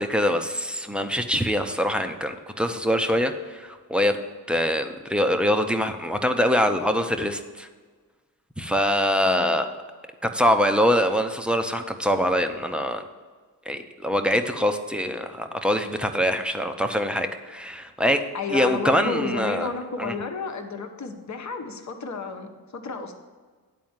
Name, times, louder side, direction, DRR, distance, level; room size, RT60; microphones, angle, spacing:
voice 1, 0.0-4.2 4.5-7.7 8.6-9.7 10.2-13.0 13.7-18.2 18.5-19.7 20.0-20.1, equal, 5° right, 6 dB, 0.7 m, -24 dB
voice 2, 18.3-23.1, left 4 dB, 45° left, 5 dB, 1.1 m, -32 dB
9.3 x 4.2 x 7.4 m, 1.5 s
cardioid pair, 70°, 39 cm